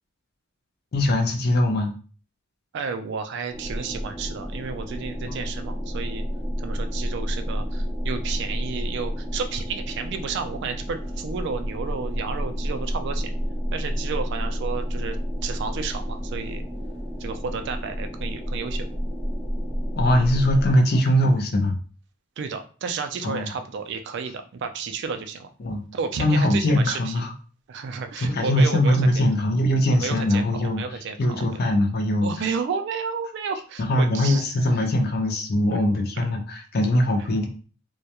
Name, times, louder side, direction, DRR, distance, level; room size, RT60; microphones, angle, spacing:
voice 1, 0.9-1.9 5.3-5.4 20.0-21.8 23.2-23.5 25.6-25.8 26.2-27.3 28.3-30.8 31.2-32.3 33.8-37.5, left 1 dB, 45° left, 3 dB, 0.5 m, -21 dB
voice 2, 2.7-6.2 6.6-13.3 13.7-15.2 15.4-16.6 17.2-18.9 22.4-25.5 25.9-27.2 27.7-29.2 29.9-31.6 32.2-34.4 35.7-35.8, right 5 dB, 55° right, 8 dB, 0.3 m, -32 dB
sound 1, 3.5-20.7, equal, 10° left, 0.6 m, -30 dB
2.3 x 2.1 x 2.8 m, 0.38 s
head